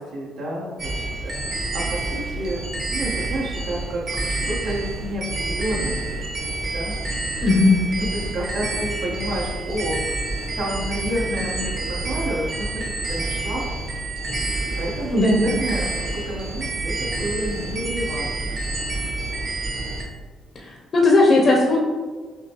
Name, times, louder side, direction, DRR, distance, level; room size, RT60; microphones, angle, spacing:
voice 1, 0.0-6.2 6.7-6.9 8.0-10.0 10.6-13.6 14.8-18.6, right 1 dB, 85° right, -5 dB, 1.3 m, -30 dB
sound 1, 0.8-20.0, right 2 dB, 50° right, 1.1 m, -28 dB
voice 2, 7.4-7.9 15.1-15.5 20.5-21.8, left 2 dB, 45° left, -2 dB, 0.6 m, -17 dB
5.9 x 2.2 x 3.0 m, 1.4 s
cardioid pair, 90°, 0 cm